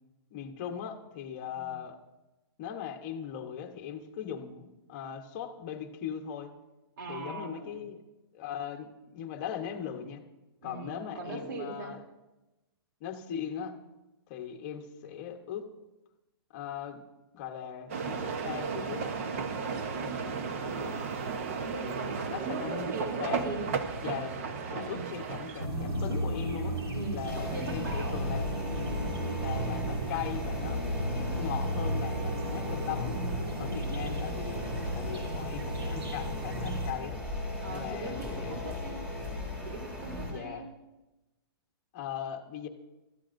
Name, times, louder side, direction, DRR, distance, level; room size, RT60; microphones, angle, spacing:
voice 1, 0.3-2.0 2.6-6.5 7.1-8.0 8.3-10.2 10.6-12.0 13.0-13.7 14.3-15.7 16.5-17.0 17.3-19.1 20.0-21.0 22.3-22.9 23.2-23.4 24.0-24.4 24.7-26.8 27.1-28.7 29.4-30.8 31.2-33.2 33.5-37.2 37.7-38.8 40.3-40.7 41.9-42.7, left 8 dB, 25° left, 3 dB, 1.0 m, -39 dB
voice 2, 1.5-1.8 7.0-7.8 10.6-11.9 20.7-21.3 21.6-23.6 24.7-25.1 26.9-28.2 33.6-34.1 37.6-39.1 39.6-40.7, right 3 dB, 50° right, 2 dB, 3.0 m, -40 dB
sound 1, 17.9-25.7, right 5 dB, 35° right, 0.9 m, -34 dB
sound 2, 25.6-36.9, right 1 dB, 85° right, 3.3 m, -34 dB
sound 3, 27.3-40.3, left 2 dB, 10° right, 2.5 m, -37 dB
24.0 x 13.5 x 2.6 m, 1.0 s
hypercardioid pair, 175°, 13 cm